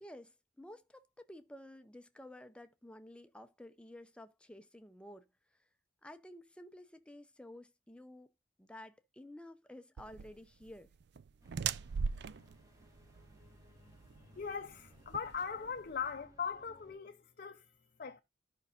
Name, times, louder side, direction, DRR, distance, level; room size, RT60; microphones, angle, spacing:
voice 1, 0.0-5.3 6.0-8.3 8.6-10.9, left 1 dB, 5° left, 0.6 m, -52 dB
sound 1, 10.0-16.1, right 6 dB, 60° right, 0.4 m, -41 dB
sound 2, 11.4-17.0, equal, 15° right, 1.6 m, -63 dB
voice 2, 14.2-18.2, left 6 dB, 50° left, 0.6 m, -40 dB
14.0 x 5.4 x 2.5 m
head